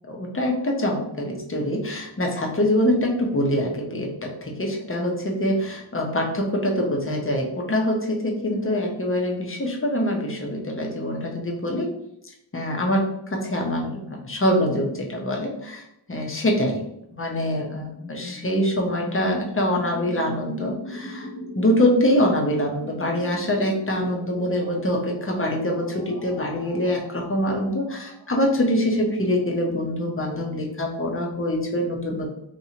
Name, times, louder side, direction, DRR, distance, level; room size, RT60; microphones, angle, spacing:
voice 1, 0.1-11.9 12.5-16.8 17.1-21.3 21.6-32.3, left 1 dB, 25° left, 0 dB, 0.8 m, -24 dB
sound 1, 17.7-29.5, right 1 dB, 40° right, 1.1 m, -39 dB
3.0 x 2.9 x 2.8 m, 0.79 s
wide cardioid pair, 70°, 48 cm